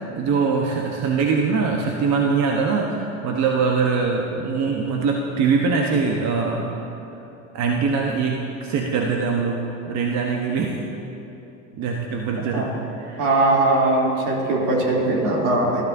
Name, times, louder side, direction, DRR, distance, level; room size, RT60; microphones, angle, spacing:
voice 1, 0.1-6.8 7.5-10.8 11.8-13.3, right 5 dB, 40° right, 0 dB, 1.2 m, -23 dB
voice 2, 13.2-15.8, right 2 dB, 65° right, -3 dB, 3.2 m, -20 dB
19.0 x 12.5 x 2.7 m, 2.9 s
hypercardioid pair, 85°, 41 cm